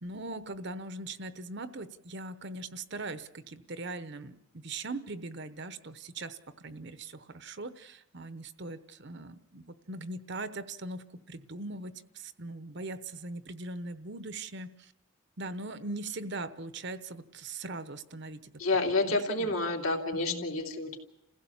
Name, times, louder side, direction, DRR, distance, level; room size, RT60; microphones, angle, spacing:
voice 1, 0.0-14.9 15.4-18.5 19.1-19.5 20.3-20.5, right 2 dB, 50° right, 12 dB, 0.9 m, -40 dB
voice 2, 18.6-21.0, left 2 dB, 75° left, 1 dB, 3.0 m, -29 dB
28.5 x 16.0 x 7.2 m, 0.88 s
head